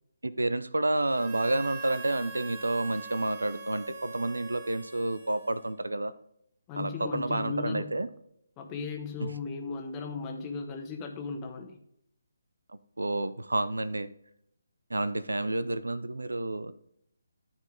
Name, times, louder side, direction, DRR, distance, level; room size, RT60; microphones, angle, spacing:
voice 1, 0.2-6.1 6.8-8.1 9.2-9.3 13.0-14.1 14.9-16.7, right 2 dB, 75° right, 14 dB, 0.6 m, -30 dB
Harmonica, 1.1-6.0, right 4 dB, 35° right, 1.5 m, -43 dB
voice 2, 6.7-7.9 8.6-11.8, left 4 dB, 20° left, 3 dB, 1.2 m, -36 dB
12.5 x 4.5 x 3.8 m, 0.73 s
figure-of-eight pair, 145°, 0 cm